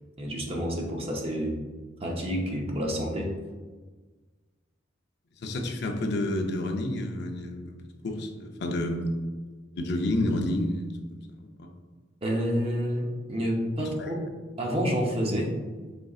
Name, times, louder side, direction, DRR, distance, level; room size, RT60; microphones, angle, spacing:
voice 1, 0.2-1.6 2.0-3.4 12.2-14.2 14.6-15.6, equal, 30° right, 0 dB, 0.7 m, -29 dB
voice 2, 5.4-7.8 8.0-9.2 9.8-11.7 14.0-14.1, left 1 dB, 60° left, 3 dB, 0.5 m, -30 dB
5.0 x 3.7 x 2.4 m, 1.4 s
head